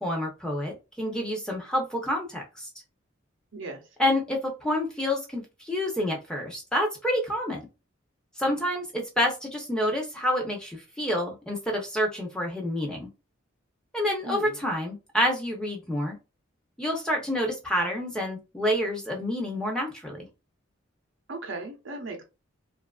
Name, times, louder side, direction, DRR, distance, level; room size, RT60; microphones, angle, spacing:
voice 1, 0.0-2.7 4.0-7.7 8.4-13.1 13.9-16.2 16.8-20.3, left 1 dB, 5° left, 0 dB, 0.6 m, -28 dB
voice 2, 3.5-3.8 14.2-14.6 21.3-22.2, right 3 dB, 65° right, 4 dB, 0.6 m, -37 dB
2.7 x 2.4 x 2.3 m, 0.28 s
head